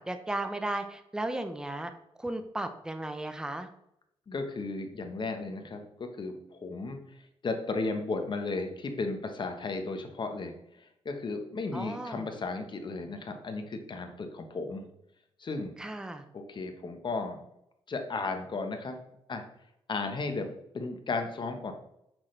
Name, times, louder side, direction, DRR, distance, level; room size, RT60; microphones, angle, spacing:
voice 1, 0.0-1.9 2.2-3.7 11.7-12.3 15.8-16.2, right 1 dB, 5° right, 8 dB, 0.6 m, -35 dB
voice 2, 4.3-7.0 7.4-10.5 11.0-14.9 15.4-15.7 16.3-17.4 17.9-19.0 19.3-19.4 19.9-21.7, left 3 dB, 45° left, 5 dB, 1.1 m, -34 dB
6.1 x 6.0 x 3.3 m, 0.78 s
cardioid pair, 80°, 11 cm